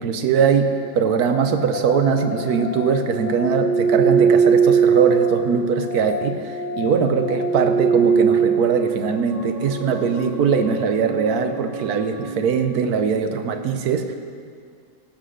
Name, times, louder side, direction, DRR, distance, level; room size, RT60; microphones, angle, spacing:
voice 1, 0.0-14.1, right 6 dB, 70° right, 7 dB, 1.2 m, -21 dB
sound 1, 0.7-12.6, right 5 dB, 35° left, 1.8 m, -22 dB
15.5 x 5.7 x 6.4 m, 2.2 s
omnidirectional pair, 1.8 m